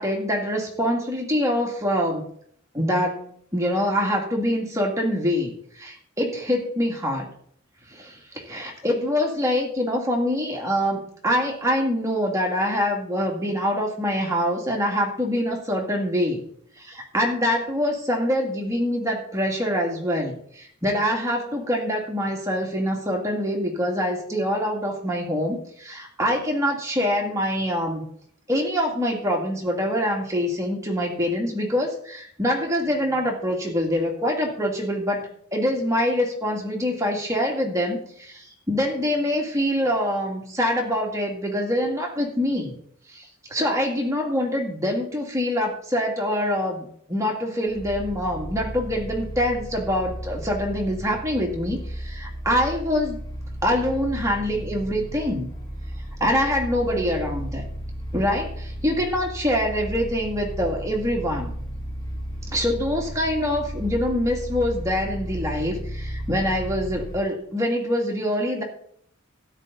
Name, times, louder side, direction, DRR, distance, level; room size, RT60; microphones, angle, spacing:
voice 1, 0.0-2.2 2.7-7.3 7.9-16.4 16.8-28.0 28.5-42.7 43.1-53.2 53.6-55.5 56.2-57.6 58.1-61.6 62.5-68.6, equal, 15° right, 0 dB, 2.4 m, -25 dB
sound 1, 47.7-67.2, equal, 20° left, 2.9 m, -34 dB
13.0 x 9.9 x 4.1 m, 0.63 s
head